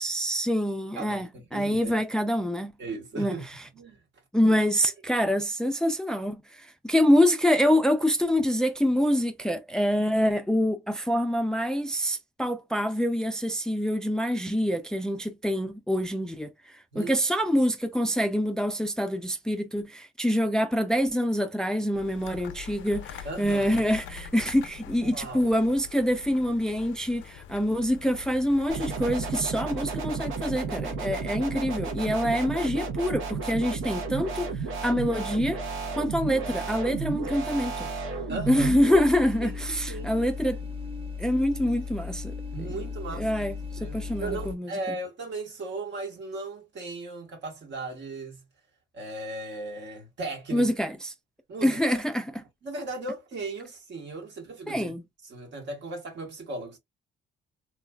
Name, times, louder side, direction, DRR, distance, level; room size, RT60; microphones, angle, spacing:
voice 1, 0.0-2.7 3.2-3.6 4.3-35.6 35.9-37.9 38.5-40.6 41.2-42.3 43.1-43.5 43.8-45.0 50.5-51.1 51.6-52.4 54.7-55.0, equal, 5° left, 0.4 m, -26 dB
voice 2, 0.9-1.9 2.8-3.4 3.7-4.0 16.9-17.2 23.2-23.8 25.0-25.5 38.3-38.7 39.4-40.1 42.5-43.4 43.8-48.4 48.9-50.7 51.5-52.0 52.4-54.9 55.2-56.8, right 2 dB, 65° right, 1.3 m, -37 dB
sound 1, 21.9-29.3, left 9 dB, 75° left, 0.5 m, -44 dB
sound 2, 28.7-39.0, right 4 dB, 90° right, 0.9 m, -33 dB
sound 3, 38.5-44.5, left 5 dB, 25° right, 0.9 m, -36 dB
3.2 x 2.3 x 2.2 m
cardioid pair, 90°, 20 cm